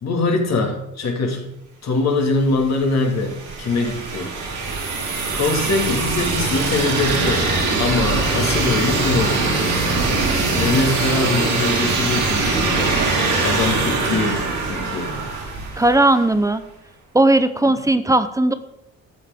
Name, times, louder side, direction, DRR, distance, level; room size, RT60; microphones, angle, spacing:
voice 1, 0.0-1.5 1.8-4.4 5.3-7.5 7.8-9.6 10.5-13.0 13.4-15.1 17.6-17.7, left 3 dB, 60° left, 3 dB, 2.2 m, -22 dB
sound 1, 2.5-16.3, right 3 dB, 80° right, 2.8 m, -22 dB
voice 2, 15.8-16.6 17.1-18.5, right 2 dB, 10° right, 12 dB, 0.7 m, -17 dB
13.0 x 7.2 x 3.6 m, 0.85 s
cardioid pair, 90°, 30 cm